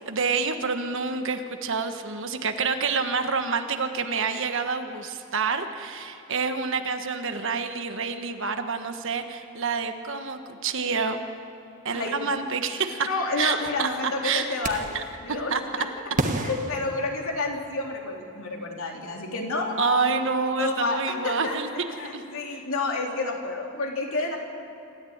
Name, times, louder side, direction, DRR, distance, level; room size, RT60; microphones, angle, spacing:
voice 1, 0.1-11.2 11.8-13.1 13.4-14.4 14.9-15.6 19.8-21.7 22.1-22.2, right 5 dB, 60° right, 7 dB, 1.4 m, -28 dB
voice 2, 13.0-14.9 15.2-15.9 16.3-20.0 20.6-21.5 22.0-24.4, left 3 dB, 65° left, 0 dB, 3.4 m, -29 dB
sound 1, 14.6-15.1 16.2-17.7, right 2 dB, 35° right, 1.5 m, -30 dB
26.5 x 14.0 x 8.8 m, 2.9 s
head